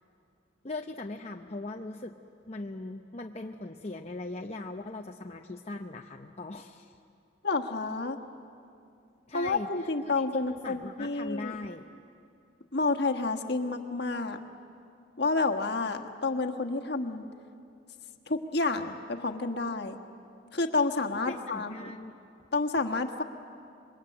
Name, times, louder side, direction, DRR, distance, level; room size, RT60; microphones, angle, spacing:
voice 1, 0.6-2.1 2.5-7.0 9.3-11.9 21.1-22.1, left 2 dB, 35° left, 2 dB, 0.8 m, -40 dB
voice 2, 7.4-8.2 9.3-11.6 12.7-14.4 15.2-17.3 18.3-20.0 20.5-21.9 22.5-23.2, left 3 dB, 60° left, 4 dB, 1.5 m, -29 dB
27.0 x 22.0 x 8.7 m, 2.5 s
head